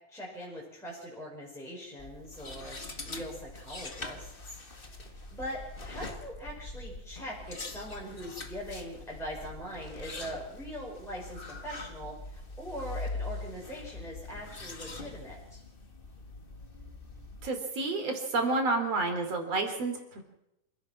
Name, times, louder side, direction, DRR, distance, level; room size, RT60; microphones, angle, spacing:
voice 1, 0.1-5.6 5.8-15.6, equal, ahead, -4 dB, 5.0 m, -42 dB
sound 1, 2.0-17.5, left 3 dB, 35° left, 0.8 m, -43 dB
voice 2, 17.4-20.2, right 3 dB, 45° right, 5 dB, 4.0 m, -30 dB
27.5 x 16.0 x 6.0 m, 0.83 s
omnidirectional pair, 4.0 m